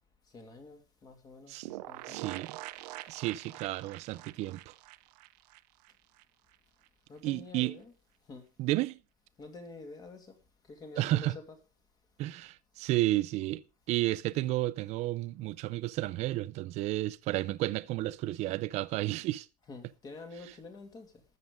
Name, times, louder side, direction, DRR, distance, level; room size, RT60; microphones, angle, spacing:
voice 1, 0.3-2.4 3.2-3.3 7.1-7.9 8.3-8.5 9.4-10.4 10.6-11.6 19.6-21.2, left 3 dB, 20° left, 2.5 m, -48 dB
sound 1, 1.6-6.2 6.5-6.6 6.8-6.9, right 18 dB, 85° right, 0.8 m, -45 dB
voice 2, 2.1-2.6 3.1-4.7 7.2-7.8 8.6-9.0 11.0-11.4 12.2-13.6 13.9-19.5, right 16 dB, 35° right, 0.6 m, -32 dB
13.0 x 8.1 x 5.3 m
cardioid pair, 175°, 20 cm